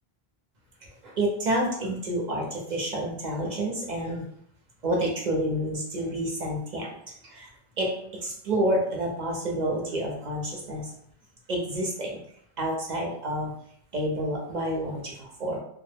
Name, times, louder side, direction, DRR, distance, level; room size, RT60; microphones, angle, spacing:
voice 1, 0.8-4.2 4.8-6.9 7.2-7.5 7.8-7.9 8.2-10.9 11.5-12.2 12.6-13.5 13.9-15.6, right 1 dB, 55° right, -1 dB, 0.6 m, -29 dB
2.0 x 2.0 x 3.2 m, 0.67 s
omnidirectional pair, 1.0 m